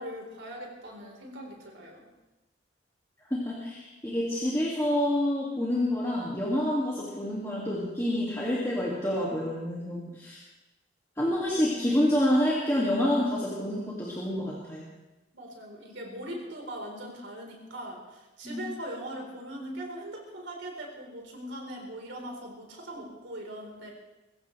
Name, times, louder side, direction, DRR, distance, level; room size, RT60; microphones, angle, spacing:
voice 1, 0.0-2.1 15.3-23.9, right 1 dB, 85° right, 0 dB, 4.4 m, -40 dB
voice 2, 3.3-10.4 11.2-14.9 18.4-18.6, left 1 dB, 15° left, -6 dB, 2.3 m, -28 dB
22.5 x 15.5 x 3.4 m, 1.0 s
head